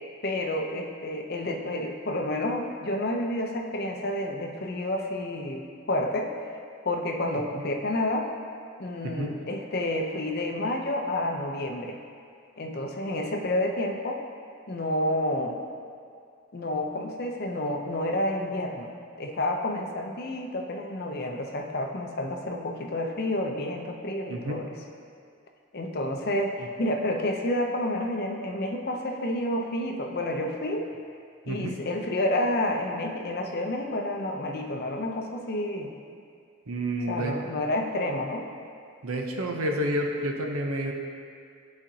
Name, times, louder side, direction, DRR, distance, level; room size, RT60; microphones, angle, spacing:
voice 1, 0.2-5.6 5.9-6.3 6.8-8.3 8.8-12.0 12.6-14.2 14.7-15.6 16.5-18.9 19.2-24.7 25.7-30.9 31.5-35.9 37.1-38.5, left 1 dB, 45° left, 2 dB, 0.6 m, -29 dB
voice 2, 31.5-31.8 36.7-37.3 39.0-40.9, right 1 dB, 80° right, 2 dB, 0.7 m, -29 dB
11.5 x 4.2 x 2.8 m, 2.3 s
head